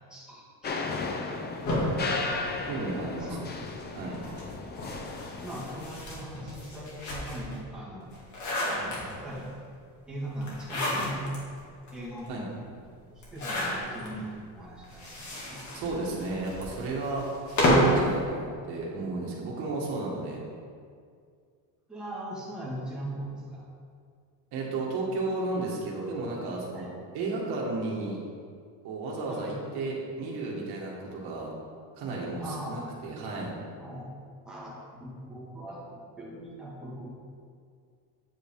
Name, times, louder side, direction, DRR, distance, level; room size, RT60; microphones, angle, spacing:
voice 1, 0.1-0.4 3.2-3.4 4.0-4.3 5.4-8.2 8.7-9.5 10.1-12.6 13.1-15.6 21.9-23.6 26.7-26.9 29.3-29.6 32.4-32.9 33.8-34.2 34.4-37.1, right 1 dB, ahead, -8 dB, 2.0 m, -40 dB
sound 1, 0.6-5.9, left 3 dB, 25° left, 0.6 m, -35 dB
sound 2, 1.6-3.2 4.1-7.6 8.0-9.4 10.4-11.4 11.9-12.0 12.2-12.3 13.2-14.1 14.8-18.0, left 1 dB, 45° left, 2.4 m, -30 dB
voice 2, 2.6-3.4 3.9-4.2 12.3-12.5 15.7-20.4 24.5-26.9 27.1-28.2 28.8-31.5 32.0-33.5, right 3 dB, 70° right, -4 dB, 2.1 m, -33 dB
9.0 x 7.3 x 3.8 m, 2.2 s
cardioid pair, 155°, 42 cm